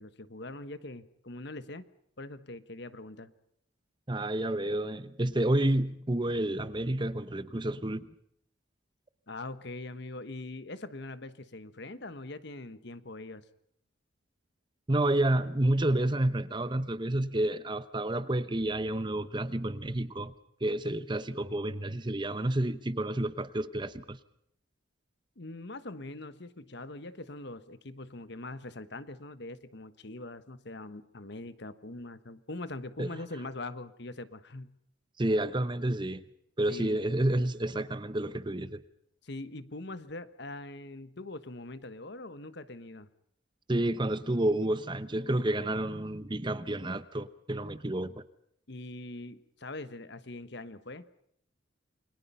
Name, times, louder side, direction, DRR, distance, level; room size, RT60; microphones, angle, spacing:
voice 1, 0.0-1.8 2.2-3.3 9.3-13.4 25.4-34.8 36.7-37.0 39.2-43.1 48.7-51.1, left 2 dB, 55° left, 1.3 m, -42 dB
voice 2, 4.1-8.1 14.9-20.3 20.6-24.2 33.0-33.1 35.2-36.2 36.6-38.8 43.7-48.2, right 1 dB, 25° right, 0.9 m, -30 dB
29.0 x 22.5 x 5.6 m
head